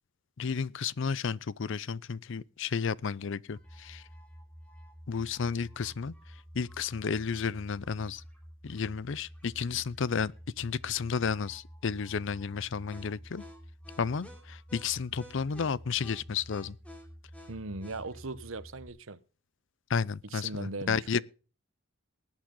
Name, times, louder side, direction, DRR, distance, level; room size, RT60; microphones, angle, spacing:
voice 1, 0.4-4.1 5.1-8.2 8.6-13.4 14.0-16.8 19.9-21.2, left 6 dB, 60° left, 0.5 m, -32 dB
sound 1, 3.5-18.9, equal, 5° left, 3.0 m, -50 dB
voice 2, 17.5-19.2 20.3-21.2, right 3 dB, 70° right, 1.0 m, -39 dB
20.0 x 9.0 x 3.8 m
head